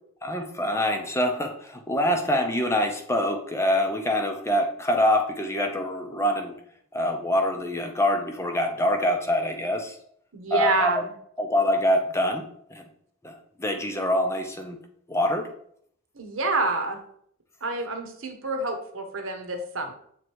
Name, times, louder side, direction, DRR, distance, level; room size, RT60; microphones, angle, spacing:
voice 1, 0.2-6.5 6.9-10.0 10.5-11.0 11.4-12.8 13.2-14.8 15.1-15.5, left 1 dB, 15° left, 4 dB, 0.6 m, -25 dB
voice 2, 10.3-11.1 16.1-17.0 17.6-19.9, right 3 dB, 70° right, 4 dB, 1.1 m, -27 dB
7.7 x 3.3 x 4.5 m, 0.66 s
head